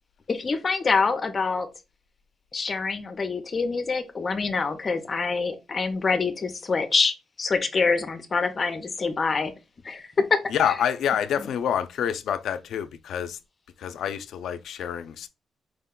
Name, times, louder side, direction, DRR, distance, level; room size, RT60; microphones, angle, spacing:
voice 1, 0.3-1.7 2.5-9.5 9.8-10.4 10.6-10.7 11.4-11.5, left 4 dB, 30° left, 0.6 m, -25 dB
voice 2, 10.5-13.4 13.8-15.3, left 9 dB, 80° left, 0.3 m, -27 dB
4.8 x 2.2 x 3.6 m
wide cardioid pair, 150°, 0 cm